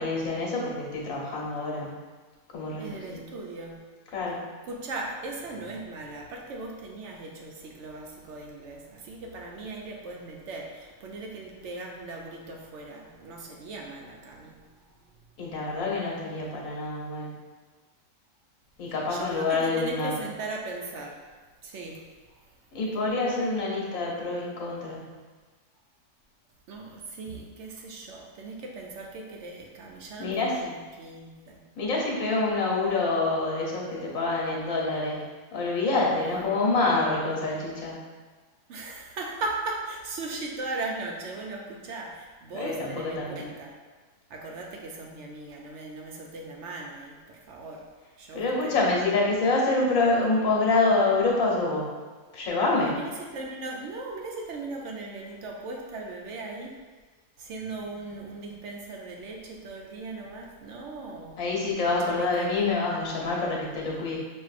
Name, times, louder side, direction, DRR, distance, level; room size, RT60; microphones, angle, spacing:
voice 1, 0.0-1.9 2.5-3.2 4.1-4.4 15.4-17.3 18.8-20.1 22.7-25.1 30.2-30.6 31.8-35.2 35.5-38.0 42.5-43.3 48.3-51.9 52.3-52.9 61.4-64.2, left 3 dB, 70° left, -3 dB, 1.3 m, -26 dB
voice 2, 2.8-3.8 4.6-15.0 15.4-15.5 19.1-21.2 21.6-22.0 22.3-22.4 26.7-31.6 36.2-36.5 38.7-43.7 44.3-47.9 48.2-48.8 52.8-56.8 57.4-61.4 61.9-62.7, right 2 dB, 65° right, 0 dB, 0.7 m, -38 dB
6.0 x 2.6 x 2.4 m, 1.4 s
omnidirectional pair, 1.6 m